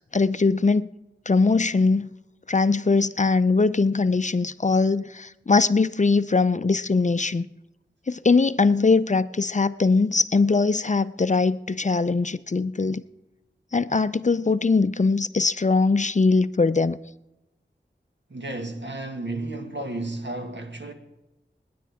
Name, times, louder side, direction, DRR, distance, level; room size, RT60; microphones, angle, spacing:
voice 1, 0.1-0.9 1.3-2.1 2.5-7.5 8.1-13.0 13.7-17.0, left 4 dB, 40° left, 0.5 m, -21 dB
voice 2, 18.3-20.9, right 2 dB, 70° right, 1.8 m, -32 dB
26.0 x 10.5 x 3.5 m
wide cardioid pair, 55°, 19 cm